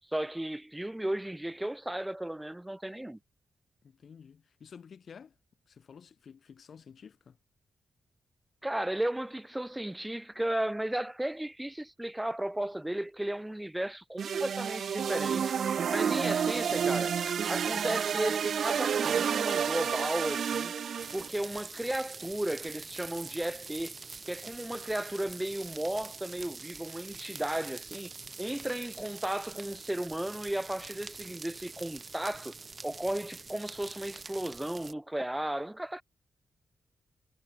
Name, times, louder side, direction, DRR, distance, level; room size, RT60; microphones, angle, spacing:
voice 1, 0.1-3.2 8.6-15.6 15.9-20.7 21.1-23.9 24.2-28.1 28.4-32.5 32.8-36.0, right 1 dB, 10° right, 1.7 m, -34 dB
voice 2, 3.8-5.3 5.7-7.4, left 6 dB, 65° left, 2.8 m, -51 dB
sound 1, 14.2-21.3, right 7 dB, 70° right, 0.4 m, -30 dB
sound 2, 21.0-34.9, right 4 dB, 40° right, 1.6 m, -45 dB
cardioid pair, 70°, 0 cm